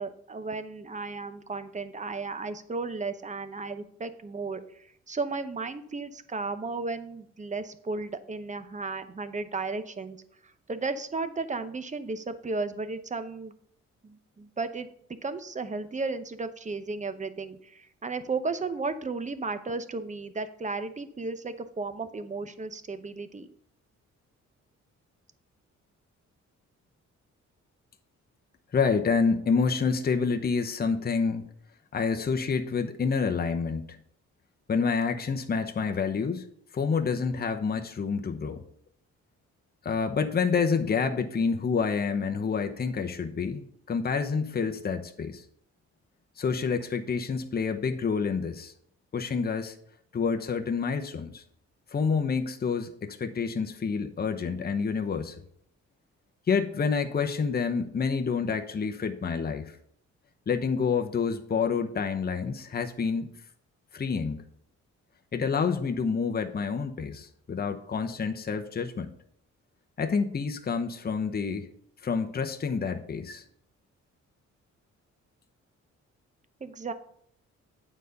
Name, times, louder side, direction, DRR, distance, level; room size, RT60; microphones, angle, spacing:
voice 1, 0.0-10.2 10.4-13.5 14.0-14.9 15.2-23.5 76.6-76.9, right 3 dB, 25° right, 11 dB, 0.8 m, -34 dB
voice 2, 28.7-31.4 31.9-34.0 34.7-36.4 36.7-38.6 39.8-45.4 46.4-48.7 49.1-49.8 50.1-51.4 51.9-55.3 56.5-59.7 60.5-63.3 63.9-64.4 65.3-69.1 70.0-71.7 72.0-73.4, left 5 dB, 30° left, 5 dB, 0.8 m, -28 dB
9.1 x 4.1 x 6.5 m, 0.66 s
cardioid pair, 95°, 29 cm